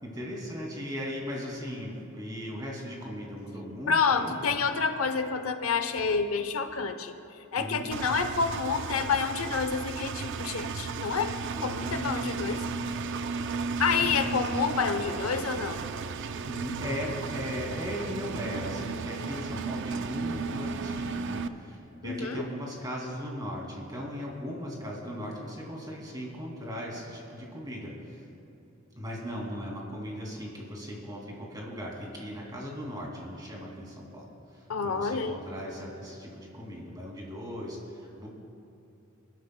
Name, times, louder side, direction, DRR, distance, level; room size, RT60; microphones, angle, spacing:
voice 1, 0.0-4.6 7.6-7.9 11.5-12.6 13.9-14.6 16.4-28.2 29.0-38.3, equal, 20° right, -2 dB, 2.4 m, -38 dB
voice 2, 3.9-7.1 7.5-12.6 13.8-15.8 22.0-22.4 34.7-35.4, left 5 dB, 80° left, 9 dB, 0.7 m, -28 dB
Engine, 7.9-21.5, right 4 dB, 60° right, 0.4 m, -34 dB
25.5 x 12.5 x 2.2 m, 2.7 s
head